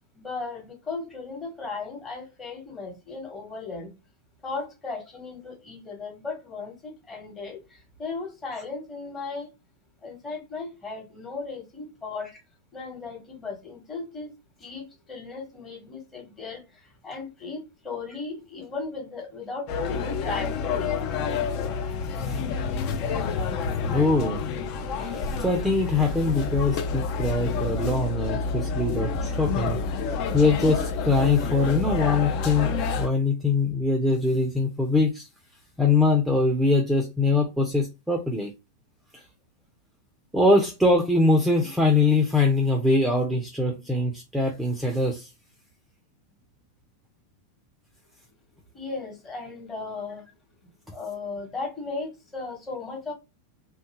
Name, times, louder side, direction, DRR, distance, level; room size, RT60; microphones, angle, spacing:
voice 1, 0.1-3.9 4.4-9.5 10.0-12.3 12.7-20.9 48.7-50.3 50.9-53.1, left 4 dB, 20° left, 1.2 m, -36 dB
sound 1, 19.7-33.1, left 5 dB, 40° left, 0.5 m, -28 dB
voice 2, 23.9-24.4 25.0-29.8 30.3-35.3 35.8-38.5 39.1-39.2 40.3-45.3, left 3 dB, 5° right, 0.6 m, -23 dB
2.7 x 2.3 x 2.9 m
figure-of-eight pair, 90°, 0 cm